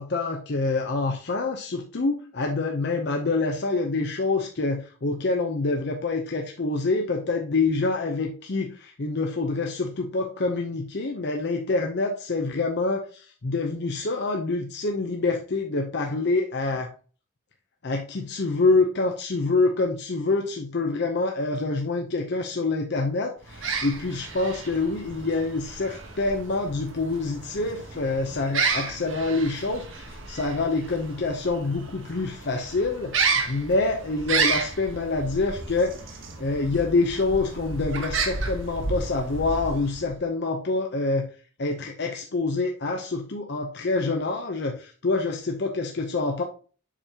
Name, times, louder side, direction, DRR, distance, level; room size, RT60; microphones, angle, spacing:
voice 1, 0.0-16.9 17.8-41.3 41.6-46.4, left 3 dB, 55° left, 2 dB, 0.7 m, -26 dB
sound 1, 23.4-40.2, right 4 dB, 70° right, 1.2 m, -32 dB
7.3 x 5.2 x 2.8 m, 0.38 s
head